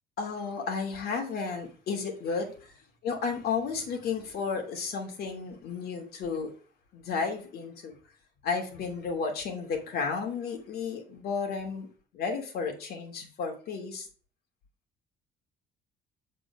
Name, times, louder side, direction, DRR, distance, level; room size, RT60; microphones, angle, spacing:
voice 1, 0.2-2.7 3.0-6.5 6.9-7.9 8.4-11.9 12.1-14.1, left 5 dB, 65° left, 2.8 m, -33 dB
7.8 x 4.6 x 5.9 m
cardioid pair, 110°, 17 cm